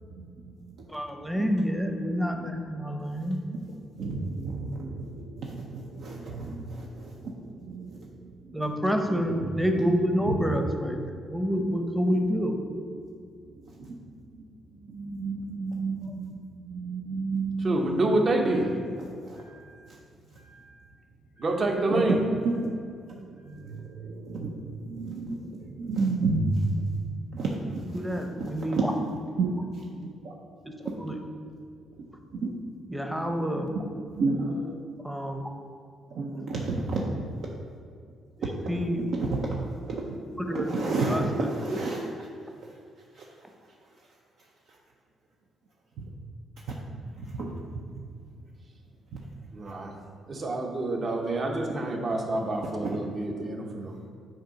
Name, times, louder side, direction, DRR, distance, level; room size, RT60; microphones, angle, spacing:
voice 1, 0.9-3.4 8.5-12.6 16.1-16.2 27.9-28.9 30.7-30.8 31.0-31.2 32.9-33.7 35.0-35.4 37.1-37.2 38.4-39.1 40.3-41.8, equal, 5° right, 3 dB, 0.7 m, -28 dB
voice 2, 4.0-7.4 7.7-8.0 9.2-9.3 10.3-10.4 13.8-14.0 14.9-18.0 19.2-19.7 20.4-20.7 21.4-21.5 21.9-22.2 22.4-22.7 23.4-26.9 27.3-27.8 28.4-28.8 29.4-29.6 29.9-30.3 30.8-30.9 32.4-32.5 34.2-34.7 36.1-37.0 39.1-39.4 39.9-40.1 40.5-42.0 47.3-47.5 52.8-53.0, right 3 dB, 70° right, -1 dB, 0.6 m, -31 dB
voice 3, 17.6-18.8 21.4-22.2 49.5-49.9 50.3-53.9, right 2 dB, 45° right, 1 dB, 0.9 m, -27 dB
7.5 x 2.8 x 5.2 m, 2.3 s
cardioid pair, 90°, 0 cm